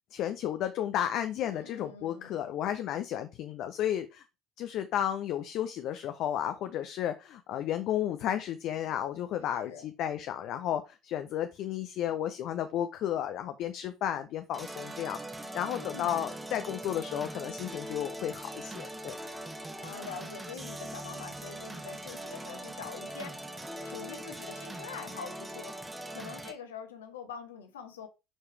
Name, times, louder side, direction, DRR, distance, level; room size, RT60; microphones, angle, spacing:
voice 1, 0.1-4.2 4.6-19.2, left 10 dB, 50° left, 0.5 m, -33 dB
voice 2, 1.4-2.4 9.6-9.9 15.7-16.3 19.8-23.4 23.8-25.7 26.1-28.1, left 6 dB, 70° left, 1.1 m, -44 dB
sound 1, 14.5-26.5, right 1 dB, 10° right, 1.0 m, -41 dB
7.1 x 4.8 x 3.2 m
figure-of-eight pair, 60°, 0 cm